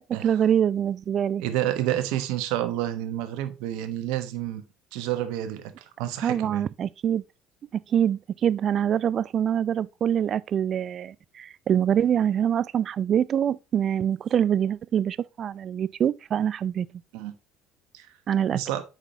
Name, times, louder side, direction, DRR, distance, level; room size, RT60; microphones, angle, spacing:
voice 1, 0.2-1.4 6.2-7.2 7.7-16.9 18.3-18.6, right 9 dB, 50° right, 0.4 m, -25 dB
voice 2, 1.4-4.6 4.9-6.6 17.1-17.3 17.9-18.1 18.5-18.8, right 13 dB, 80° right, 1.1 m, -29 dB
8.1 x 5.9 x 2.8 m
supercardioid pair, 75°, 0 cm